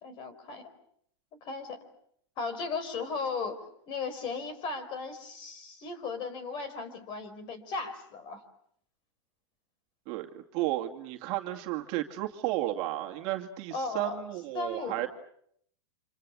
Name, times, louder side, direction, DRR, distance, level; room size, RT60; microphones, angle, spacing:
voice 1, 0.0-0.7 1.4-1.8 2.4-3.6 3.9-8.4 13.7-14.2 14.5-15.1, left 4 dB, 35° left, 12 dB, 4.5 m, -36 dB
voice 2, 10.1-15.1, right 15 dB, 40° right, 3 dB, 2.4 m, -33 dB
30.0 x 27.5 x 6.3 m, 0.68 s
supercardioid pair, 150°, 15 cm